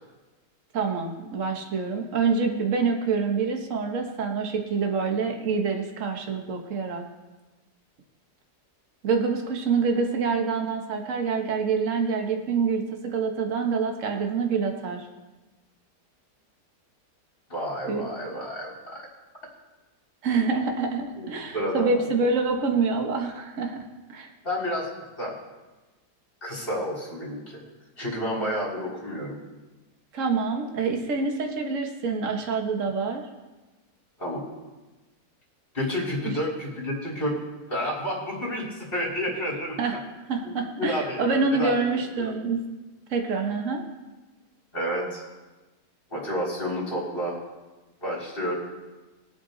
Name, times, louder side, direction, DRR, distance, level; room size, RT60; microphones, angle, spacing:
voice 1, 0.7-7.0 9.0-15.1 17.9-18.0 20.2-24.3 30.1-33.2 36.2-36.3 39.8-40.0 40.3-42.6 43.1-43.8, right 4 dB, 50° right, 3 dB, 1.6 m, -26 dB
voice 2, 17.5-19.0 21.2-22.1 24.4-24.9 25.2-25.3 26.4-27.6 28.0-29.4 34.2-34.4 35.7-37.4 37.7-39.8 40.4-42.3 44.7-45.2 46.1-47.4 48.0-48.5, equal, 30° left, -5 dB, 4.3 m, -30 dB
21.5 x 8.0 x 4.0 m, 1.2 s
omnidirectional pair, 1.8 m